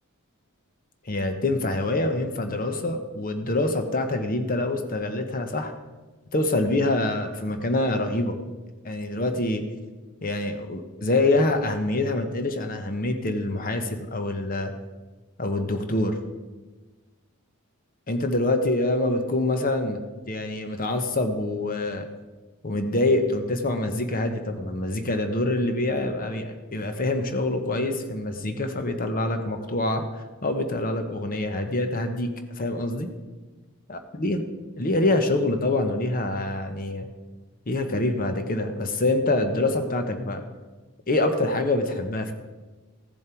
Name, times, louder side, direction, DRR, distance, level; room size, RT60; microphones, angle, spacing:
voice 1, 1.0-5.7 6.3-8.4 8.8-9.6 10.2-14.7 15.4-16.2 18.1-20.0 20.3-22.1 22.6-32.3 32.6-33.1 33.9-34.4 34.8-37.1 37.7-40.4 41.1-42.3, left 2 dB, 40° left, 7 dB, 1.0 m, -25 dB
15.5 x 7.3 x 4.6 m, 1.3 s
head